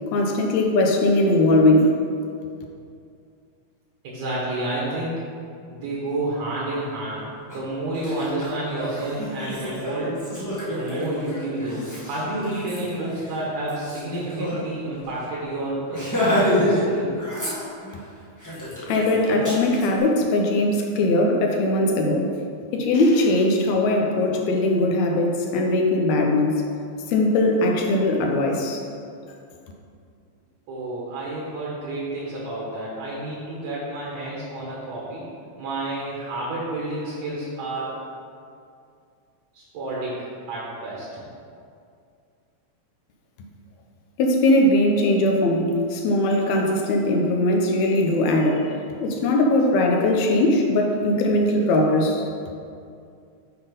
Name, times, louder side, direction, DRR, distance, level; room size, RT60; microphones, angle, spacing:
voice 1, 0.1-2.0 18.8-22.3 22.7-26.6 27.1-28.8 44.2-48.7 49.0-52.2, left 1 dB, 75° left, 1 dB, 1.9 m, -20 dB
voice 2, 4.0-5.1 5.7-7.2 7.5-10.1 10.7-17.1 30.7-35.2 35.6-38.0 39.5-41.2, right 2 dB, 65° right, -6 dB, 2.4 m, -30 dB
Laughter, 7.5-7.6 7.9-14.6 14.9-15.0 15.3-15.5 15.9-16.9 17.1-18.0 18.4-19.9, left 1 dB, 15° left, 0.6 m, -28 dB
8.2 x 3.8 x 5.1 m, 2.4 s
omnidirectional pair, 3.4 m